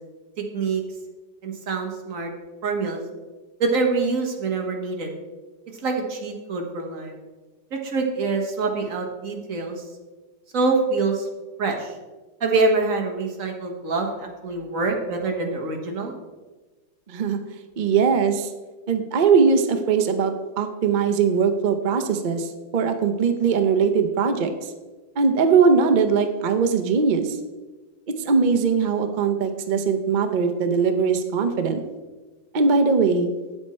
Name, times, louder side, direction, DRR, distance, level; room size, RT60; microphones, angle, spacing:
voice 1, 1.4-2.3 2.6-3.0 3.6-5.1 5.8-7.1 7.7-9.8 10.5-11.3 11.6-11.9 12.4-16.1, right 3 dB, 50° right, 2 dB, 1.6 m, -25 dB
voice 2, 17.1-17.4 17.8-18.5 18.9-24.5 25.2-27.4 28.2-31.8 32.5-33.3, right 5 dB, 80° right, 7 dB, 0.4 m, -20 dB
9.0 x 7.9 x 4.3 m, 1.2 s
omnidirectional pair, 2.0 m